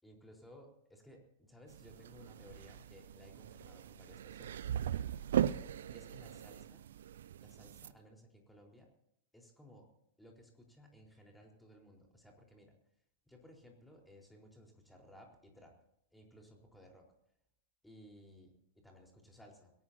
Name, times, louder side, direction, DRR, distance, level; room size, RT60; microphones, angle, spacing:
voice 1, 0.0-4.7 5.9-6.8 7.4-8.9 9.3-9.9 10.2-12.8 13.3-15.8 16.1-17.1 17.8-19.7, equal, 5° left, 1 dB, 4.3 m, -59 dB
sound 1, 1.7-7.9, right 10 dB, 60° right, 0.6 m, -39 dB
22.0 x 18.5 x 2.8 m, 0.78 s
figure-of-eight pair, 100°, 0 cm